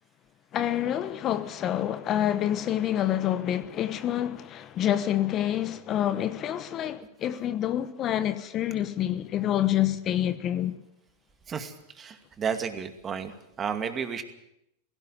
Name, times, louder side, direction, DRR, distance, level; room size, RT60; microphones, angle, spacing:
voice 1, 0.5-10.8, left 11 dB, 35° left, 1.2 m, -27 dB
voice 2, 11.5-13.3 13.6-14.2, right 6 dB, 25° right, 2.4 m, -32 dB
17.0 x 16.5 x 9.5 m
hypercardioid pair, 115°, 0 cm